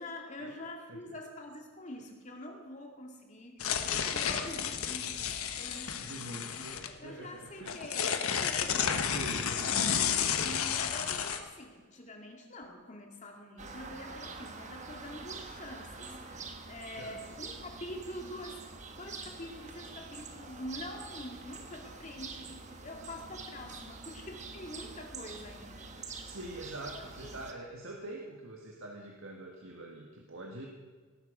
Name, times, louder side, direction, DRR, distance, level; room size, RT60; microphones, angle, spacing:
voice 1, 0.0-9.1 9.3-9.9 10.4-26.3 26.9-27.3, left 1 dB, 35° left, 2 dB, 2.4 m, -46 dB
sound 1, 3.6-6.9 7.4-11.4, left 7 dB, 90° left, 1.2 m, -32 dB
voice 2, 6.0-7.7 9.0-9.8 17.0-17.4 26.2-30.7, right 1 dB, 70° right, 0 dB, 1.7 m, -45 dB
sound 2, 13.6-27.5, right 4 dB, 35° right, 1.2 m, -46 dB
18.5 x 12.0 x 5.1 m, 1.5 s
head